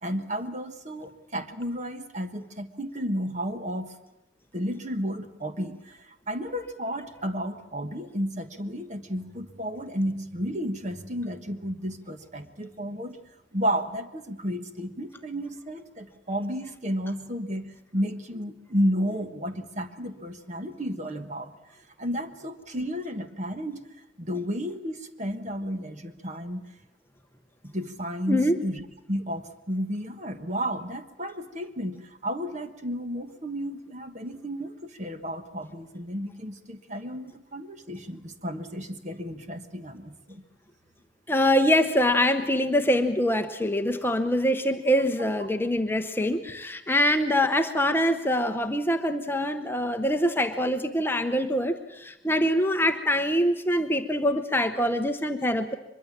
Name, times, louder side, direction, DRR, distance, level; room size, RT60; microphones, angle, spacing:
voice 1, 0.0-4.0 4.5-13.2 13.5-21.5 22.0-23.8 24.2-26.7 27.6-28.8 29.1-40.4, equal, 35° right, 8 dB, 1.4 m, -32 dB
voice 2, 41.3-55.7, equal, 10° left, 6 dB, 0.8 m, -24 dB
23.5 x 22.0 x 7.4 m, 0.95 s
head